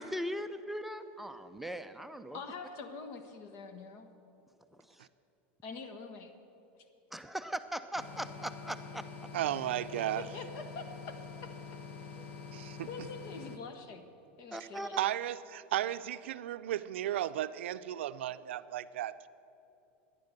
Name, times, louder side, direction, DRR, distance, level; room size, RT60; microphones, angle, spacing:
voice 1, 0.0-2.4 7.1-9.0 12.2-12.3 14.5-15.0, equal, 5° right, 8 dB, 0.5 m, -39 dB
voice 2, 2.3-4.1 5.6-6.3 10.2-11.5 12.6-14.0 14.4-15.0, left 4 dB, 50° left, 9 dB, 1.4 m, -45 dB
sound 1, 7.9-13.6, left 5 dB, 85° left, 1.2 m, -46 dB
voice 3, 9.3-10.3 12.5-12.9 15.0-19.3, right 12 dB, 90° right, 13 dB, 0.5 m, -34 dB
14.0 x 10.5 x 6.7 m, 2.8 s
supercardioid pair, 130°, 6 cm